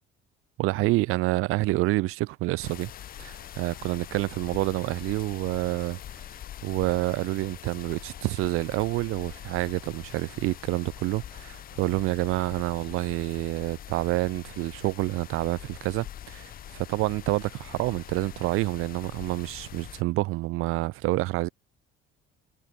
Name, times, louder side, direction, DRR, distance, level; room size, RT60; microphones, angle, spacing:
voice 1, 0.6-2.9 3.2-6.2 6.6-21.5, right 19 dB, 85° right, 3.7 m, -28 dB
sound 1, 2.6-20.0, left 11 dB, 45° left, 7.6 m, -44 dB
cardioid pair, 180°, 21 cm